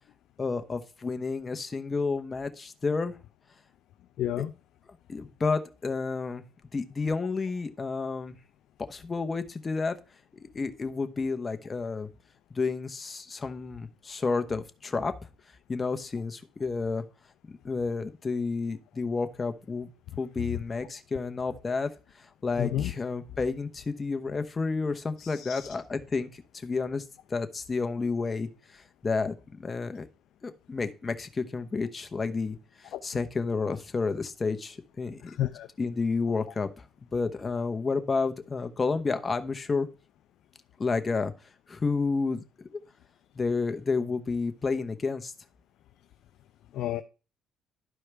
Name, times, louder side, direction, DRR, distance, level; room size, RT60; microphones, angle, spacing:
voice 1, 0.4-3.1 4.4-4.5 5.1-6.4 6.7-8.4 8.9-10.0 10.4-12.1 12.5-15.1 15.7-17.0 17.6-19.9 20.2-21.9 22.4-27.0 27.3-30.1 30.4-32.6 32.8-36.7 37.1-39.9 40.8-41.3 41.7-42.4 43.4-45.3, left 4 dB, 25° left, 0.9 m, -30 dB
voice 2, 4.2-4.5 22.6-22.9 25.2-25.7 32.9-33.0 35.4-35.7 46.7-47.0, left 12 dB, 70° left, 0.5 m, -30 dB
12.0 x 4.6 x 3.4 m
cardioid pair, 100°, 0 cm